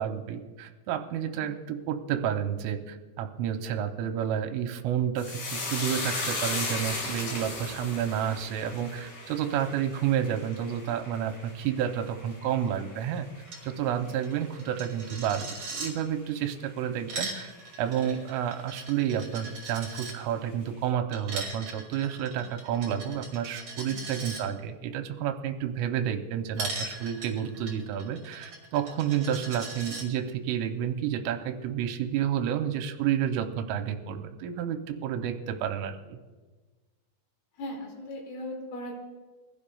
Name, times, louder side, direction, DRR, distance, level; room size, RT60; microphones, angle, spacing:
voice 1, 0.0-13.3 13.6-36.2, right 9 dB, 90° right, 6 dB, 3.2 m, -30 dB
sound 1, 5.2-13.8 14.1-14.7 15.0-15.3, left 3 dB, 50° left, 4.1 m, -36 dB
Coin (dropping), 13.4-13.6 13.9-14.0 14.2-15.9 16.8-20.1 21.1-24.4 26.6-30.0, right 3 dB, 40° right, 2.7 m, -39 dB
voice 2, 37.6-38.9, left 1 dB, 80° left, 0 dB, 5.1 m, -40 dB
23.5 x 15.5 x 2.4 m, 1.3 s
omnidirectional pair, 5.8 m